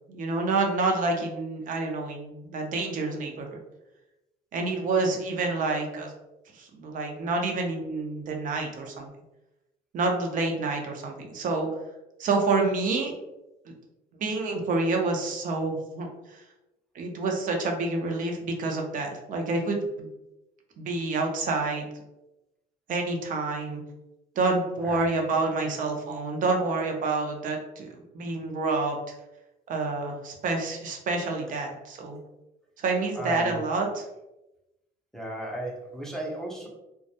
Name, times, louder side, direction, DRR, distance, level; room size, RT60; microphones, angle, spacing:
voice 1, 0.1-3.6 4.5-6.1 6.5-9.1 9.9-11.7 12.2-13.1 14.2-16.4 16.9-20.1 20.8-21.9 22.9-23.8 24.4-29.0 29.7-32.2 32.8-34.0, right 3 dB, 50° right, 2 dB, 0.6 m, -28 dB
voice 2, 33.2-33.6 35.1-36.7, right 1 dB, 5° left, -3 dB, 0.5 m, -35 dB
2.2 x 2.0 x 2.7 m, 0.94 s
cardioid pair, 110°, 17 cm